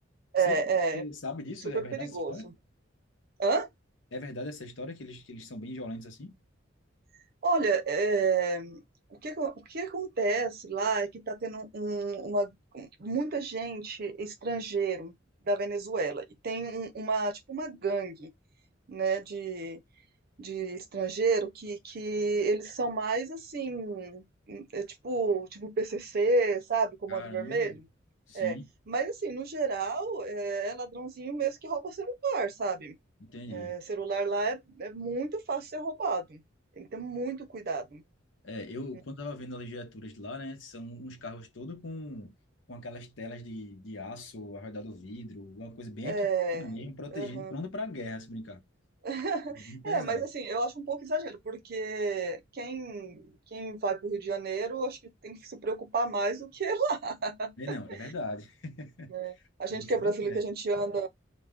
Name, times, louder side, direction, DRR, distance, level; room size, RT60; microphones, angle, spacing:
voice 1, 0.3-1.0 1.7-2.5 3.4-3.7 7.4-8.8 9.1-15.1 15.5-18.3 18.9-19.8 20.4-27.8 28.3-28.6 28.9-33.0 33.5-36.4 36.8-38.0 46.0-46.7 47.1-47.5 49.0-58.0 59.1-59.3 59.6-61.1, right 3 dB, 55° right, 0.6 m, -31 dB
voice 2, 0.9-2.5 4.1-6.4 27.1-27.8 28.3-28.7 33.2-33.7 38.4-42.3 42.7-46.3 46.5-48.6 49.5-50.2 57.6-59.2 59.7-60.4, left 1 dB, 80° left, 0.8 m, -40 dB
2.4 x 2.1 x 3.5 m
head